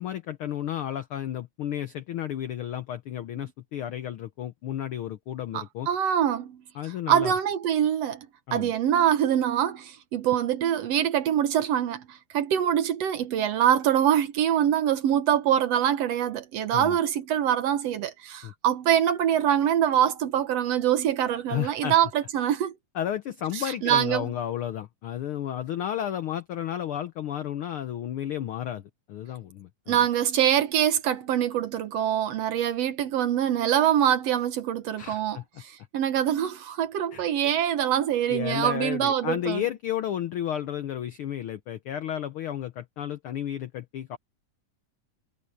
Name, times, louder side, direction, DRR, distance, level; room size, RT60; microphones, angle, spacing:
voice 1, 0.0-5.9 6.7-7.3 8.5-8.7 16.7-17.0 18.4-18.5 21.5-21.9 22.9-30.0 35.0-35.6 37.1-37.2 38.3-44.2, left 11 dB, 85° left, 1.2 m, -32 dB
voice 2, 5.5-6.6 7.1-8.3 8.5-22.7 23.8-24.3 29.9-39.6, right 10 dB, 65° right, 1.9 m, -24 dB
omnidirectional pair, 3.5 m